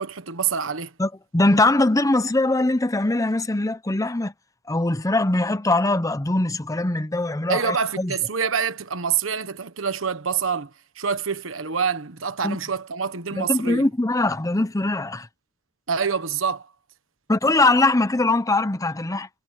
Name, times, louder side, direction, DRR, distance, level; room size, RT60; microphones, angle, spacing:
voice 1, 0.0-0.9 7.5-10.7 11.0-13.9 15.9-16.7, right 6 dB, 90° right, 1.3 m, -26 dB
voice 2, 1.0-4.3 4.7-8.1 12.4-12.6 13.3-15.3 17.3-19.3, left 2 dB, 15° left, 0.8 m, -22 dB
head